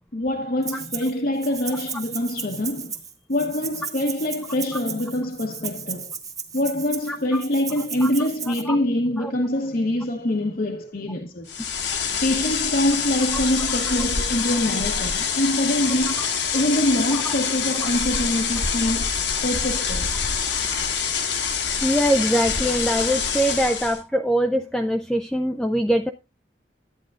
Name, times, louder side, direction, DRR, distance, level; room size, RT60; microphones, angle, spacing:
voice 1, 0.1-2.9 3.3-6.1 6.5-11.5 12.2-16.2 16.5-19.1 19.4-20.1, left 1 dB, 50° left, 0.9 m, -24 dB
Rattle (instrument), 0.6-1.1 1.4-8.6, right 6 dB, 20° right, 1.1 m, -35 dB
voice 2, 7.1-7.4 8.0-8.1 8.7-8.8 9.2-9.3 16.2-16.3 21.8-26.1, equal, 5° left, 0.4 m, -23 dB
sound 1, 11.5-24.0, left 6 dB, 75° left, 1.5 m, -25 dB
11.5 x 8.9 x 2.4 m
head